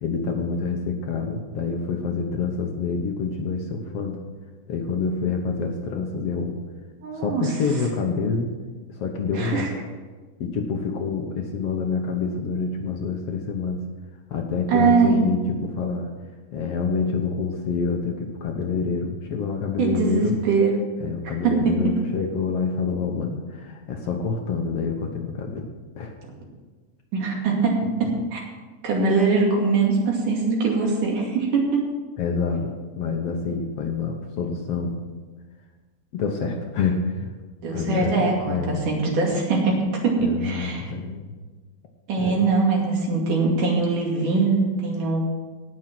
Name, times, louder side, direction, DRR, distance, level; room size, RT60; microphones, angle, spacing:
voice 1, 0.0-4.2 4.7-6.6 7.1-8.5 8.9-9.7 10.4-13.8 14.3-16.1 16.5-20.4 21.0-25.7 26.0-26.1 32.2-35.0 36.1-37.3 37.7-38.8 40.2-41.3 42.2-42.5, left 5 dB, 60° left, 2 dB, 1.8 m, -27 dB
voice 2, 7.0-7.5 9.3-9.7 14.7-15.2 19.8-20.8 21.4-21.8 27.1-28.4 28.8-31.8 37.6-39.8 40.0-40.8 42.1-45.2, right 4 dB, 80° right, -1 dB, 4.0 m, -22 dB
18.0 x 6.3 x 6.1 m, 1.3 s
omnidirectional pair, 3.6 m